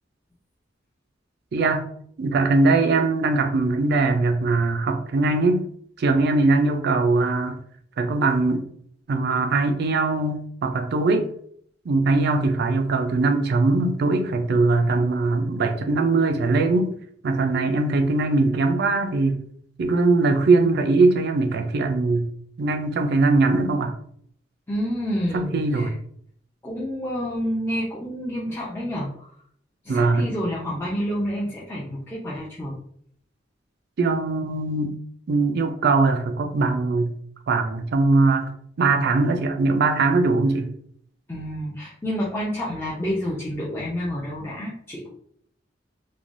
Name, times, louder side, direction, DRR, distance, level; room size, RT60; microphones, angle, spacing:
voice 1, 1.5-1.8 2.2-5.7 6.0-7.6 8.0-8.7 9.1-11.3 11.9-16.9 17.2-19.4 19.8-22.3 22.6-24.0 25.3-25.9 29.9-30.3 34.0-35.0 35.3-37.1 37.5-38.5 38.8-40.7, right 3 dB, 60° right, 6 dB, 0.4 m, -21 dB
voice 2, 24.7-25.9 26.6-29.3 29.8-32.8 41.3-45.1, equal, 15° left, -7 dB, 0.5 m, -29 dB
3.2 x 2.2 x 2.5 m, 0.65 s
head